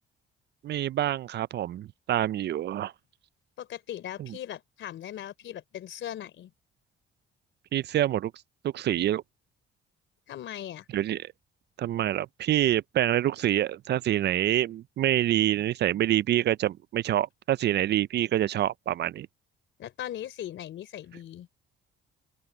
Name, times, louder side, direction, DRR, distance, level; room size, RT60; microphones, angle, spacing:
voice 1, 0.6-2.9 7.7-8.3 8.6-9.2 10.9-11.3 11.8-19.3, right 12 dB, 60° right, 0.5 m, -26 dB
voice 2, 3.6-6.5 10.3-10.9 19.8-21.5, left 11 dB, 75° left, 3.6 m, -39 dB
open air
cardioid pair, 90°, 20 cm